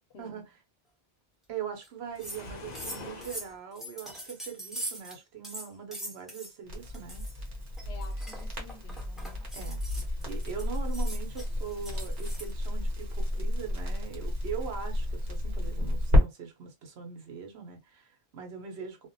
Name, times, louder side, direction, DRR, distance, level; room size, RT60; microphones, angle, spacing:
voice 1, 0.1-0.4 7.9-9.5, left 4 dB, 80° left, 0.9 m, -51 dB
voice 2, 1.5-7.2 9.5-9.8 10.2-19.1, right 7 dB, 85° right, 1.0 m, -41 dB
sound 1, 1.8-1.9 2.1-2.4 2.7-5.2 5.4-6.5 6.9-7.3 7.8-12.5, equal, ahead, 0.5 m, -42 dB
Waves surf, 2.1-3.6, left 3 dB, 50° left, 0.6 m, -44 dB
Crackle, 6.7-16.2, left 1 dB, 50° right, 1.0 m, -31 dB
2.5 x 2.1 x 2.6 m
omnidirectional pair, 1.1 m